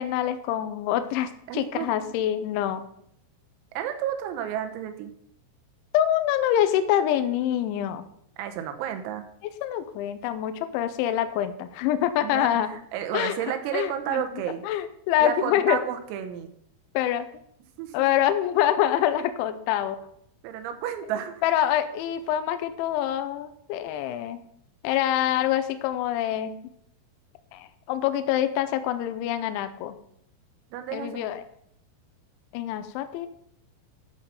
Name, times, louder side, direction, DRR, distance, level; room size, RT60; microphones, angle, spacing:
voice 1, 0.0-2.8 5.9-8.0 9.6-12.7 13.1-14.2 14.6-15.8 16.9-17.3 17.9-20.0 21.4-24.4 24.8-26.6 27.5-30.0 30.9-31.4 32.5-33.3, left 11 dB, 80° left, 10 dB, 2.9 m, -25 dB
voice 2, 1.5-2.1 3.8-5.1 8.4-9.2 12.2-12.5 12.9-14.6 15.2-16.5 17.8-17.9 20.4-21.4 30.7-31.2, right 10 dB, 90° right, 7 dB, 3.8 m, -31 dB
11.0 x 5.8 x 6.7 m, 0.69 s
omnidirectional pair, 5.9 m